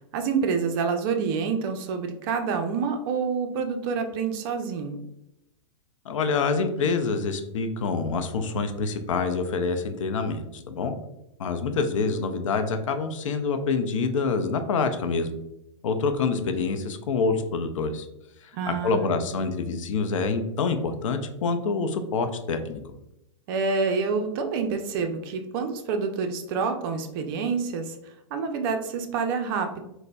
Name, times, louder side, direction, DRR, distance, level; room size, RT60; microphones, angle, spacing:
voice 1, 0.1-5.0 18.5-19.2 23.5-29.8, right 5 dB, 45° right, 6 dB, 0.4 m, -27 dB
voice 2, 6.1-10.9 11.4-15.3 15.8-18.1 18.4-22.8, left 4 dB, 80° left, 8 dB, 0.5 m, -26 dB
4.0 x 2.0 x 2.2 m, 0.85 s
hypercardioid pair, 130°, 16 cm